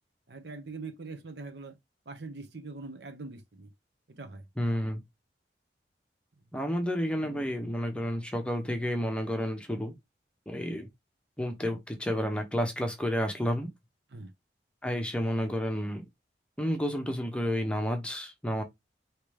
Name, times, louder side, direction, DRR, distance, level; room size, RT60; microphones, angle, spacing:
voice 1, 0.3-1.7 2.1-3.7 4.1-4.4 7.2-7.4 14.1-14.3, right 3 dB, 75° right, 1.0 m, -42 dB
voice 2, 4.6-5.0 6.5-9.9 10.5-10.9 11.4-13.7 14.8-16.1 16.6-18.6, equal, 5° left, 0.9 m, -30 dB
4.9 x 3.2 x 3.4 m
head